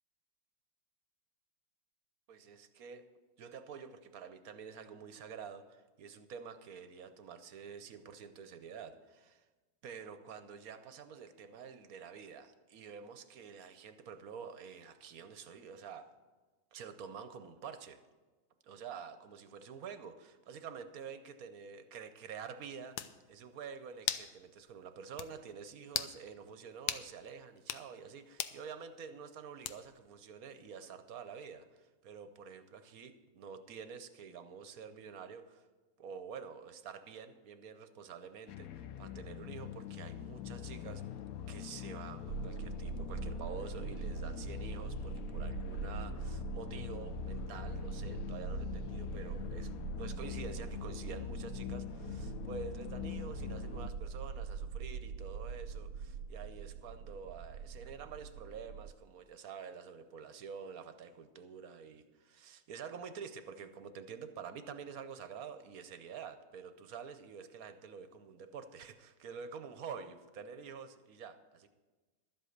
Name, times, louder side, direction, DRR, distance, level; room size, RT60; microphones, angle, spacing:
voice 1, 2.3-3.0 3.4-9.4 9.8-16.1 16.7-18.0 18.6-35.7 36.0-41.0 41.5-71.7, right 6 dB, 65° right, 10 dB, 1.0 m, -48 dB
sound 1, 22.5-22.6 23.0-23.2 24.1-24.3 24.7-24.8 25.2-25.3 25.9-26.2 26.9-27.1 27.6-27.9 28.4-28.6 29.6-30.0, left 11 dB, 90° left, 1.3 m, -37 dB
sound 2, 38.5-53.9, left 10 dB, 75° left, 0.8 m, -43 dB
sound 3, 42.3-58.9, right 7 dB, 90° right, 1.3 m, -43 dB
12.0 x 8.0 x 6.5 m, 1.3 s
omnidirectional pair, 2.0 m